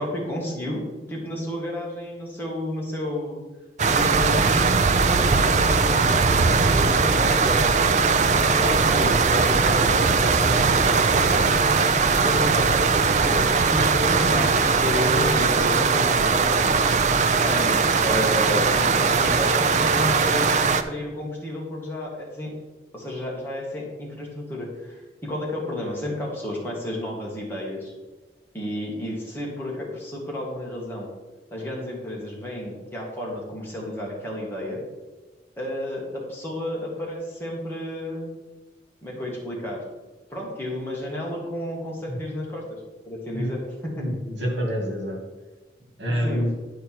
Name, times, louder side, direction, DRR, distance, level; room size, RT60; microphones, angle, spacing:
voice 1, 0.0-3.4 3.8-7.7 8.3-12.7 13.2-13.4 13.7-22.5 22.9-27.9 28.5-31.1 31.5-34.8 35.6-38.3 39.0-39.8 40.3-42.8 43.1-44.0 46.1-46.5, left 1 dB, 10° left, -4 dB, 2.0 m, -31 dB
sound 1, 3.8-20.8, right 4 dB, 40° right, 0.4 m, -20 dB
voice 2, 44.0-45.2 46.0-46.5, equal, 80° right, 0 dB, 2.2 m, -27 dB
10.0 x 5.1 x 4.6 m, 1.2 s
head